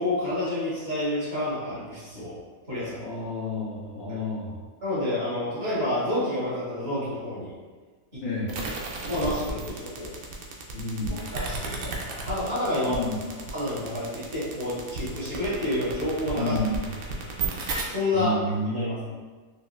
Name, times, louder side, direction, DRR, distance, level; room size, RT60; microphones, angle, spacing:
voice 1, 0.0-2.3 2.7-3.0 4.8-7.5 9.0-10.1 11.3-13.0 13.5-16.6 17.9-18.3 18.7-19.0, left 1 dB, 40° right, -10 dB, 1.2 m, -29 dB
voice 2, 2.9-4.5 8.2-8.5 10.7-11.2 12.8-13.1 16.3-16.8 18.1-19.1, left 1 dB, 65° left, -6 dB, 1.0 m, -30 dB
sound 1, 8.5-17.8, right 4 dB, 70° right, 0.8 m, -33 dB
4.2 x 2.4 x 2.3 m, 1.4 s
omnidirectional pair, 1.8 m